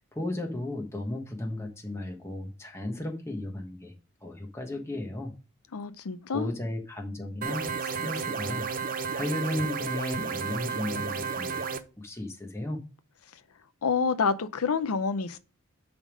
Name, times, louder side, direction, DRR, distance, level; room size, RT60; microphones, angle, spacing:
voice 1, 0.0-3.9 4.2-5.3 6.3-8.7 9.1-11.6 12.0-12.8, left 1 dB, 10° left, 1.3 m, -34 dB
voice 2, 5.7-6.5 13.8-15.4, left 5 dB, 85° left, 0.6 m, -28 dB
sound 1, 7.4-11.8, right 5 dB, 40° right, 0.6 m, -32 dB
9.9 x 3.6 x 5.1 m
head